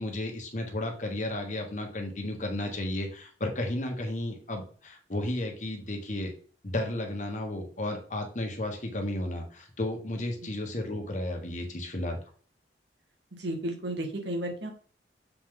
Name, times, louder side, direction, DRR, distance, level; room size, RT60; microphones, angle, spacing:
voice 1, 0.0-6.3 6.6-12.2, left 1 dB, 40° left, 3 dB, 1.4 m, -33 dB
voice 2, 13.4-14.7, right 1 dB, 75° right, 3 dB, 1.6 m, -33 dB
7.4 x 4.2 x 3.8 m, 0.42 s
head